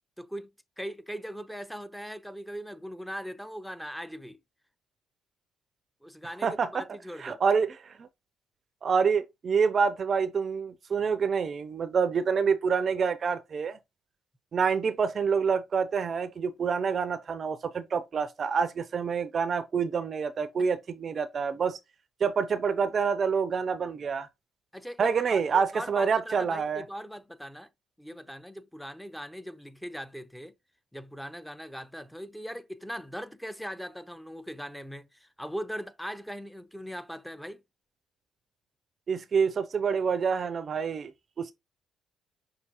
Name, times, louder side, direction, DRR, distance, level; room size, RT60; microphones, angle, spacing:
voice 1, 0.2-4.4 6.0-7.4 24.7-27.7 28.0-30.5 30.9-37.6, equal, 5° left, 0.6 m, -40 dB
voice 2, 6.4-6.8 7.2-8.1 8.8-13.8 14.5-21.8 22.2-24.3 25.0-26.8 39.1-41.1 41.4-41.5, right 6 dB, 50° right, 0.5 m, -27 dB
5.8 x 2.8 x 2.8 m
hypercardioid pair, 45°, 0 cm